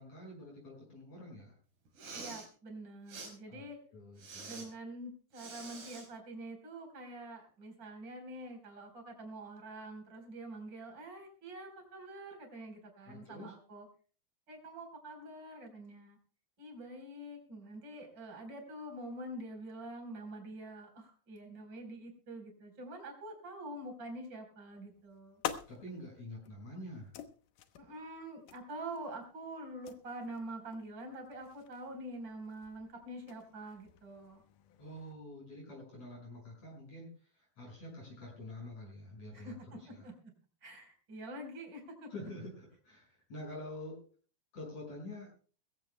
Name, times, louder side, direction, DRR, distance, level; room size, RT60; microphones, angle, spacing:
voice 1, 0.0-1.6 3.5-4.7 13.1-13.6 25.7-27.1 34.8-40.1 42.1-44.0 44.5-45.3, left 1 dB, 40° left, -2 dB, 7.0 m, -47 dB
Respiratory sounds, 1.9-2.5 3.1-3.3 4.2-4.7 5.3-6.1, right 3 dB, 60° right, 6.3 m, -46 dB
voice 2, 2.1-3.8 4.5-13.9 14.5-16.2 16.6-25.4 27.8-34.4 39.3-39.5 40.0-40.1 40.6-42.1, right 1 dB, 25° right, 3 dB, 4.6 m, -46 dB
sound 1, 24.7-35.1, left 10 dB, 70° left, 2.2 m, -48 dB
22.0 x 16.0 x 2.2 m, 0.40 s
omnidirectional pair, 4.7 m